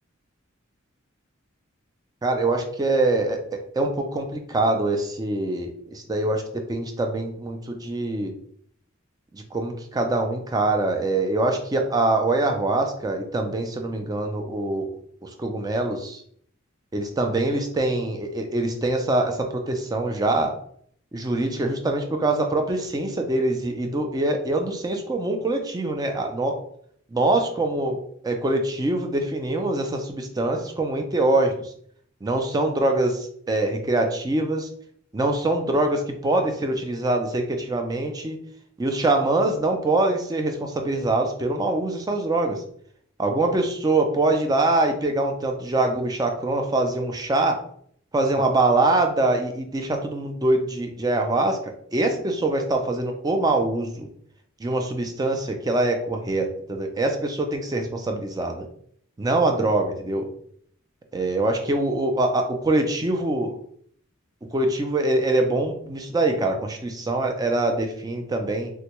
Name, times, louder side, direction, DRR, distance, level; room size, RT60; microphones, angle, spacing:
voice 1, 2.2-3.4 3.8-6.4 6.7-8.3 9.3-14.9 15.2-16.2 16.9-20.5 21.1-26.6 27.1-31.7 32.2-34.7 35.1-38.4 38.8-42.6 43.2-47.6 48.1-54.1 54.6-58.7 59.2-60.2 61.1-63.5 64.5-68.7, right 2 dB, 20° right, 4 dB, 0.4 m, -24 dB
3.4 x 2.2 x 2.9 m, 0.64 s
head